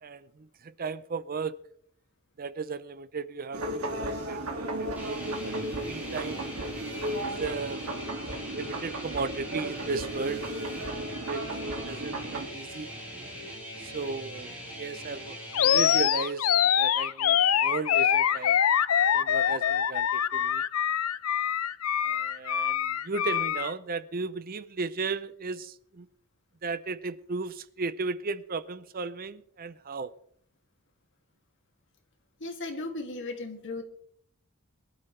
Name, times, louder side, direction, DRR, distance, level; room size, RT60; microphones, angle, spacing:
voice 1, 0.0-1.6 2.4-5.6 5.8-6.4 7.2-7.9 8.5-10.5 11.2-11.6 11.8-12.9 13.8-16.5 16.8-18.6 19.1-20.6 22.0-26.1 26.6-30.1, right 4 dB, 40° right, 0.6 m, -35 dB
sound 1, 3.5-12.5, right 1 dB, 80° right, 2.3 m, -35 dB
sound 2, 5.0-16.0, equal, 5° right, 7.5 m, -41 dB
Animal, 15.5-23.7, left 9 dB, 75° left, 0.6 m, -25 dB
voice 2, 32.4-33.8, left 2 dB, 55° left, 2.5 m, -36 dB
22.5 x 12.5 x 3.3 m
head